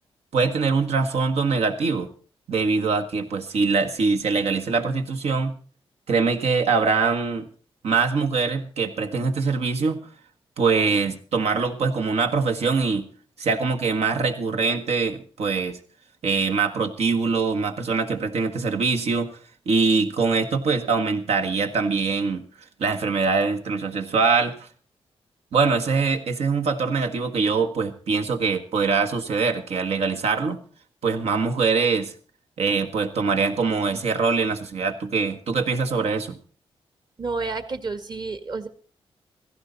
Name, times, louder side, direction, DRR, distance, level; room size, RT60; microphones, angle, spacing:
voice 1, 0.3-2.1 2.5-5.5 6.1-7.5 7.8-10.0 10.6-13.1 13.4-15.8 16.2-19.3 19.7-22.4 22.8-24.7 25.5-30.6 31.0-32.1 32.6-36.4, right 4 dB, 85° right, 5 dB, 1.7 m, -23 dB
voice 2, 37.2-38.7, right 4 dB, 45° right, 11 dB, 1.7 m, -30 dB
16.5 x 15.5 x 4.1 m, 0.40 s
wide cardioid pair, 115°, 11 cm